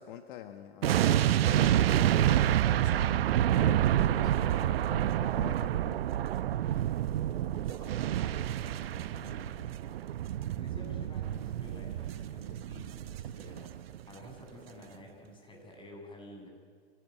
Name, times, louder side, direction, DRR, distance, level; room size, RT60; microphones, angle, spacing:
voice 1, 0.0-6.0, left 11 dB, 55° left, 7 dB, 1.5 m, -45 dB
sound 1, 0.8-14.0 14.2-14.4, right 12 dB, 65° right, 0.8 m, -28 dB
voice 2, 7.4-9.7 10.5-16.5, left 1 dB, 15° left, 1 dB, 7.1 m, -50 dB
26.0 x 17.5 x 9.3 m, 2.1 s
hypercardioid pair, 110°, 31 cm